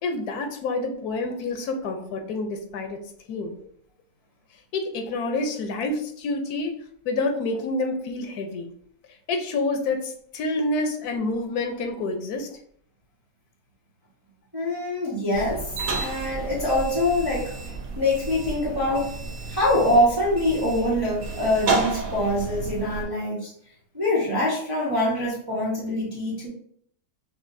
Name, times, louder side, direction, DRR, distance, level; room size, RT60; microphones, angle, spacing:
voice 1, 0.0-3.0 3.3-3.6 4.7-6.8 7.0-8.7 9.3-12.6, left 2 dB, 90° left, 5 dB, 1.2 m, -28 dB
voice 2, 14.5-17.5 18.0-23.5 23.9-26.5, left 1 dB, 15° right, -8 dB, 1.1 m, -24 dB
sound 1, 15.3-23.0, right 3 dB, 70° right, 1.2 m, -31 dB
5.8 x 2.4 x 2.6 m, 0.65 s
omnidirectional pair, 1.6 m